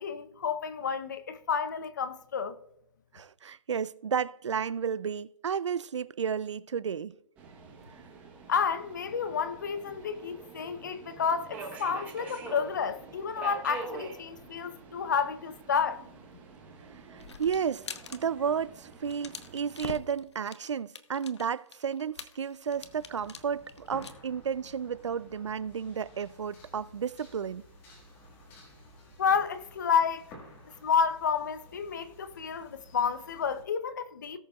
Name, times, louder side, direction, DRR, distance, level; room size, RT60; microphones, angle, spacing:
voice 1, 0.0-2.5 8.5-16.1 29.2-30.3 30.8-34.4, left 6 dB, 35° left, 0.7 m, -30 dB
voice 2, 3.1-7.1 17.1-27.6, right 7 dB, 60° right, 0.4 m, -32 dB
Subway metro underground, 7.4-20.0, right 4 dB, 10° right, 0.9 m, -46 dB
sound 1, 17.2-18.2 18.5-18.6 18.9-24.1, left 5 dB, 55° left, 0.9 m, -44 dB
sound 2, 22.7-33.6, left 1 dB, 10° left, 1.5 m, -53 dB
18.0 x 6.5 x 2.3 m
hypercardioid pair, 165°, 17 cm